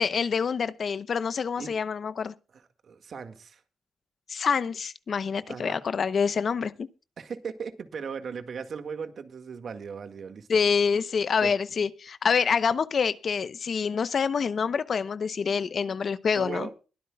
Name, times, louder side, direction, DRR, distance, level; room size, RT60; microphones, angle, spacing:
voice 1, 0.0-2.3 4.3-6.9 10.5-16.7, left 6 dB, 55° left, 0.8 m, -26 dB
voice 2, 2.5-3.6 5.5-5.8 7.2-10.6 11.4-11.5 16.3-16.7, right 6 dB, 60° right, 1.9 m, -38 dB
22.0 x 12.5 x 2.3 m
cardioid pair, 105°, 0 cm